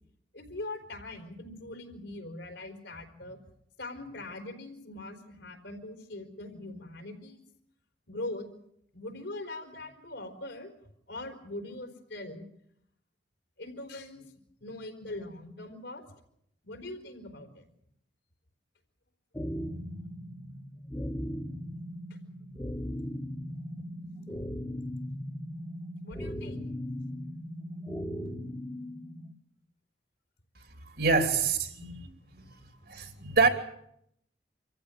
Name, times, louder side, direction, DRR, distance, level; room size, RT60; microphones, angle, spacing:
voice 1, 0.3-3.4 3.8-7.4 8.1-8.5 8.9-10.7 11.1-12.5 13.6-14.2 14.6-16.1 16.6-17.7 26.0-26.7 27.1-27.3 31.8-32.0 32.4-32.6, left 2 dB, 70° left, 4.3 m, -42 dB
sound 1, 19.3-29.3, equal, 15° left, 1.6 m, -38 dB
voice 2, 30.8-32.1 32.9-33.5, right 4 dB, 60° right, 3.1 m, -26 dB
26.0 x 15.0 x 9.1 m
head